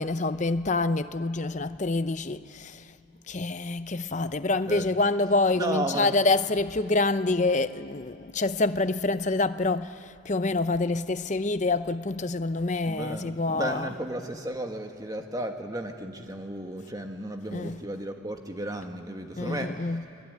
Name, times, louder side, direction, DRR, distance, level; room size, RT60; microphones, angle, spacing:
voice 1, 0.0-3.0 3.3-13.9 17.5-17.8 19.4-20.0, left 3 dB, 35° left, 0.6 m, -27 dB
voice 2, 5.6-6.1 12.9-19.7, right 1 dB, 20° right, 1.6 m, -34 dB
29.0 x 21.5 x 9.5 m
head